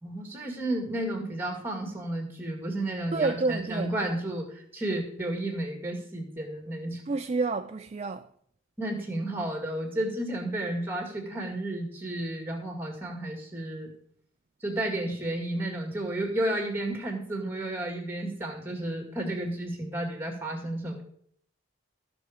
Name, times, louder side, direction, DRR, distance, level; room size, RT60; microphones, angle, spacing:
voice 1, 0.0-7.0 8.8-13.9 14.6-21.0, right 1 dB, 10° right, 2.0 m, -32 dB
voice 2, 3.1-3.9 7.1-8.3, right 3 dB, 30° right, 0.4 m, -29 dB
14.0 x 6.1 x 5.0 m
head